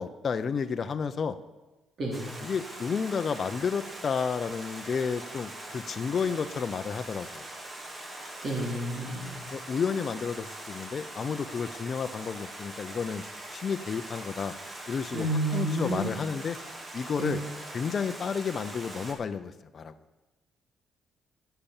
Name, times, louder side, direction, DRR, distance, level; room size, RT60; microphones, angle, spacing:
voice 1, 0.0-1.4 2.4-7.5 9.5-13.2 13.5-14.5 14.9-15.3 15.5-16.6 16.9-17.4 17.7-19.9, left 6 dB, 45° left, 9 dB, 0.6 m, -31 dB
Stream, 2.1-19.1, right 1 dB, 25° right, 2.2 m, -42 dB
voice 2, 8.4-9.3 15.1-16.1 17.2-17.4, right 1 dB, 50° right, -2 dB, 3.8 m, -30 dB
9.9 x 7.0 x 8.8 m, 1.1 s
cardioid pair, 90°, 0 cm